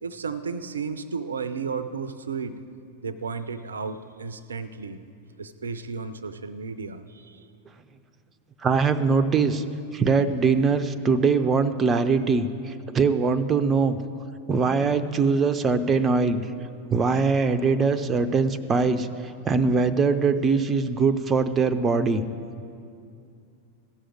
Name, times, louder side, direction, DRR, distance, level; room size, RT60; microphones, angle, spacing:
voice 1, 0.0-2.6 3.0-5.0 5.4-7.5, right 5 dB, 70° right, 13 dB, 0.5 m, -33 dB
voice 2, 8.6-9.6 9.9-14.0 14.5-16.4 16.9-19.1 19.4-22.2, right 4 dB, 20° right, 10 dB, 0.6 m, -22 dB
15.0 x 6.4 x 9.4 m, 2.4 s
figure-of-eight pair, 90°, 0 cm